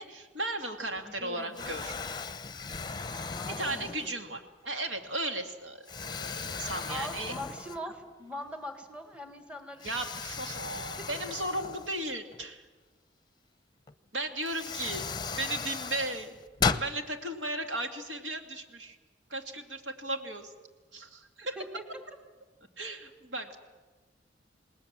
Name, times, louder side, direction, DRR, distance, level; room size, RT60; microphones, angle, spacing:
voice 1, 0.0-2.0 3.5-7.3 9.8-12.7 14.1-16.3 16.8-19.0 19.3-20.5 20.9-21.6 22.8-23.6, right 2 dB, 80° right, 4 dB, 2.5 m, -36 dB
Explosion, 0.8-1.2 1.5-4.4 5.0-5.1 5.9-8.1 8.5-8.6 9.8-12.4 13.9-14.0 14.4-16.9, left 5 dB, 25° left, 0.8 m, -36 dB
voice 2, 1.0-2.1 3.3-4.1 6.9-9.9 10.9-11.1 21.6-21.8, left 1 dB, 5° right, 5 dB, 2.0 m, -42 dB
28.5 x 19.5 x 7.6 m, 1.3 s
head